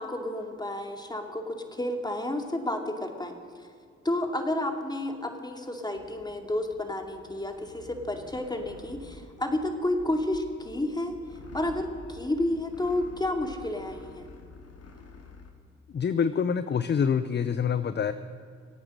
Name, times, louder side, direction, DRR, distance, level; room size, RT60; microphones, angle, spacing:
voice 1, 0.0-3.3 4.0-11.1 11.5-14.3, left 1 dB, 15° left, 4 dB, 2.5 m, -31 dB
sound 1, 5.9-15.5, left 2 dB, 50° left, 2.2 m, -49 dB
voice 2, 15.9-18.1, left 7 dB, 35° left, 13 dB, 0.6 m, -26 dB
24.5 x 8.7 x 6.5 m, 2.2 s
hypercardioid pair, 45°, 32 cm